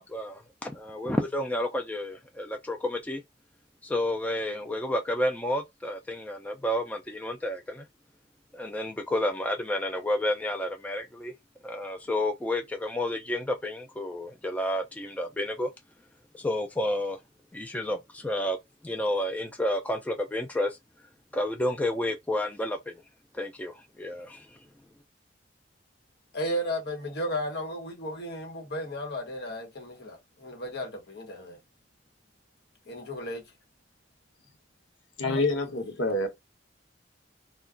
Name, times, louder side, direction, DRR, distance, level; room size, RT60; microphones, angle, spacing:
voice 1, 0.0-3.2 3.8-7.8 8.5-11.3 11.6-15.7 16.3-17.2 17.5-18.6 18.8-20.8 21.3-22.9 23.3-24.5, left 1 dB, 10° left, 0.3 m, -30 dB
voice 2, 26.3-31.6 32.9-33.4 35.3-35.4, equal, 60° left, 1.1 m, -34 dB
voice 3, 35.2-36.3, left 2 dB, 85° left, 0.8 m, -27 dB
2.3 x 2.2 x 3.6 m
head